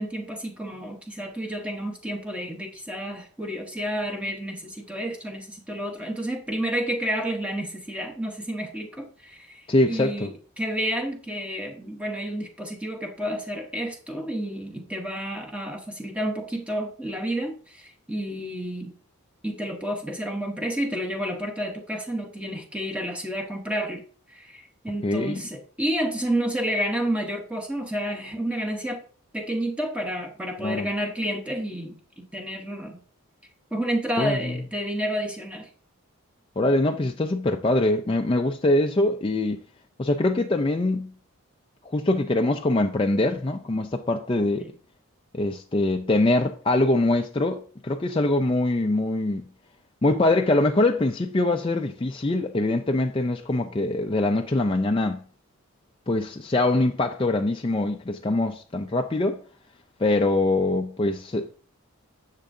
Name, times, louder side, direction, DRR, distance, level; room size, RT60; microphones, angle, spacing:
voice 1, 0.0-18.9 19.4-24.0 24.3-29.0 29.3-33.0 33.7-35.7 44.6-44.7, right 1 dB, 5° right, 0.9 m, -30 dB
voice 2, 9.7-10.3 25.0-25.4 30.6-30.9 34.2-34.4 36.6-39.6 40.0-41.1 41.9-44.7 45.3-49.4 50.0-55.2 56.1-59.4 60.0-61.5, left 2 dB, 25° left, 0.4 m, -23 dB
10.0 x 7.4 x 2.7 m
head